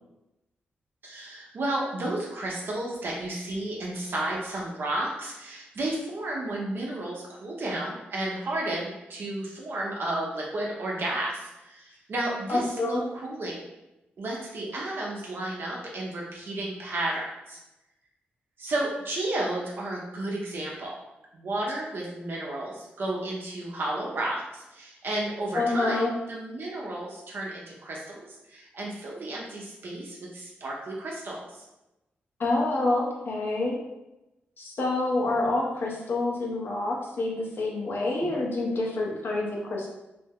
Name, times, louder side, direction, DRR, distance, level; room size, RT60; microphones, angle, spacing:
voice 1, 1.0-13.6 14.2-17.6 18.6-20.9 21.3-31.6, right 1 dB, 60° right, -3 dB, 0.7 m, -32 dB
voice 2, 12.5-13.0 25.5-26.1 32.4-33.8 34.6-39.9, left 2 dB, 60° left, -2 dB, 0.8 m, -27 dB
2.6 x 2.1 x 3.5 m, 0.95 s
cardioid pair, 65°, 4 cm